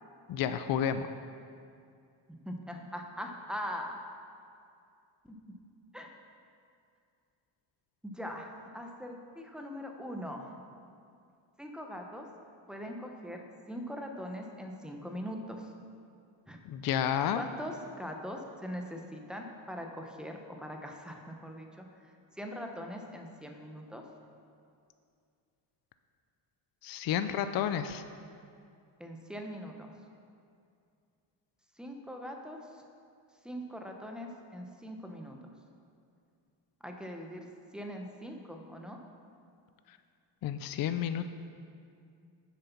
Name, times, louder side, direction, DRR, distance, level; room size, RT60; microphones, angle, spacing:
voice 1, 0.3-1.1 16.7-17.4 26.8-28.0 40.4-41.2, left 9 dB, 50° left, 10 dB, 0.5 m, -31 dB
voice 2, 2.5-4.0 5.9-6.1 8.0-10.6 11.6-12.3 12.7-15.7 16.5-16.6 17.4-24.0 29.0-29.9 31.8-32.8 33.4-35.4 36.8-37.5 37.7-39.0, equal, ahead, 2 dB, 0.7 m, -41 dB
7.6 x 7.0 x 5.9 m, 2.4 s
cardioid pair, 130°, 45 cm